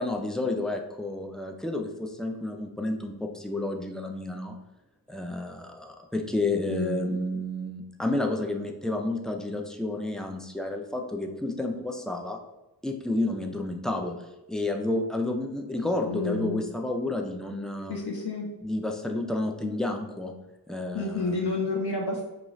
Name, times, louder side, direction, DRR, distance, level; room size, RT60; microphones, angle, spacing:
voice 1, 0.0-4.6 5.1-12.4 12.8-14.1 14.5-18.0 18.6-20.3 20.7-21.4, left 2 dB, ahead, 3 dB, 0.3 m, -30 dB
voice 2, 6.7-7.2 16.1-16.6 17.9-18.5 20.9-22.2, left 3 dB, 75° left, 0 dB, 0.5 m, -30 dB
2.4 x 2.4 x 3.0 m, 0.95 s
wide cardioid pair, 45°, 40 cm